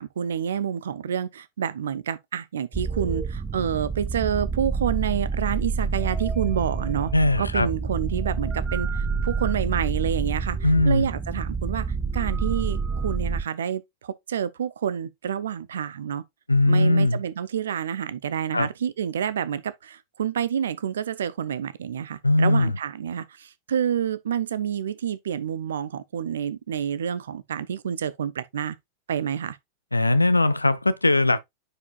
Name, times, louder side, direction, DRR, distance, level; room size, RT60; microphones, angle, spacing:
voice 1, 0.0-7.1 7.4-11.9 12.1-16.2 16.7-28.8 29.1-29.6, right 8 dB, 65° right, 0.6 m, -28 dB
sound 1, 2.7-13.4, right 4 dB, 10° right, 0.7 m, -28 dB
voice 2, 7.1-7.7 10.6-11.1 16.5-17.2 18.5-18.7 22.2-22.7 29.9-31.4, left 2 dB, 85° left, 0.6 m, -20 dB
9.6 x 4.8 x 2.3 m
figure-of-eight pair, 90°, 0 cm